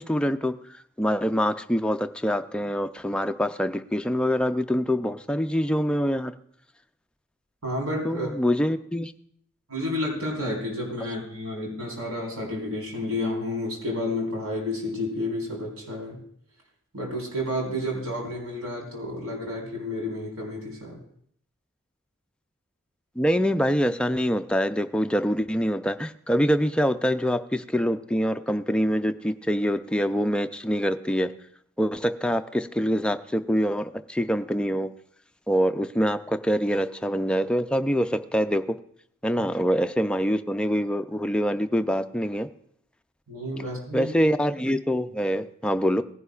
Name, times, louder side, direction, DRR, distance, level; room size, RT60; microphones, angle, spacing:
voice 1, 0.0-6.3 8.0-9.1 23.2-31.3 31.8-34.9 35.5-38.8 39.2-42.5 43.9-46.0, equal, 5° left, 8 dB, 0.3 m, -25 dB
voice 2, 7.6-8.3 9.7-16.2 16.9-21.0 43.3-44.1, left 1 dB, 80° right, -2 dB, 4.1 m, -30 dB
18.5 x 11.0 x 2.4 m, 0.66 s
head